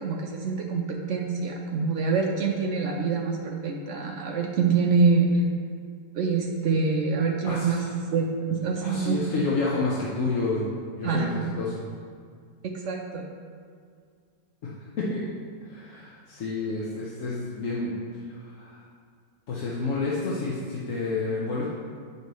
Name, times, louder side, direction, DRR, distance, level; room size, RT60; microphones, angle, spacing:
voice 1, 0.0-5.4 6.1-7.8 8.1-9.2 11.0-11.3 12.6-13.2, right 4 dB, 70° right, 1 dB, 0.7 m, -25 dB
voice 2, 7.4-7.9 8.8-11.3 11.6-11.8 14.6-14.7 15.0-15.2 15.6-18.0 18.3-18.8 19.5-21.6, left 3 dB, 55° left, -5 dB, 1.0 m, -29 dB
8.1 x 5.4 x 3.1 m, 2.1 s
omnidirectional pair, 1.9 m